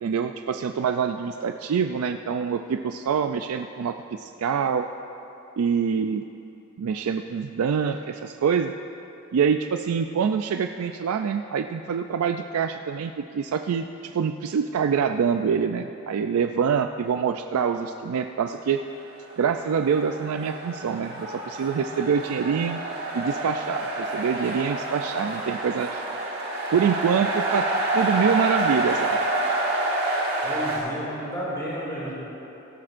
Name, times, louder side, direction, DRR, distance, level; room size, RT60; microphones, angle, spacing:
voice 1, 0.0-4.9 5.6-6.2 6.8-8.7 9.3-18.8 19.4-22.8 23.1-26.0 26.7-27.7 27.9-29.2, right 6 dB, 90° right, 6 dB, 0.4 m, -25 dB
sound 1, 19.3-30.8, right 2 dB, 50° right, 1.7 m, -28 dB
voice 2, 30.4-32.1, equal, 15° left, -7 dB, 2.4 m, -32 dB
17.0 x 13.0 x 2.5 m, 2.9 s
head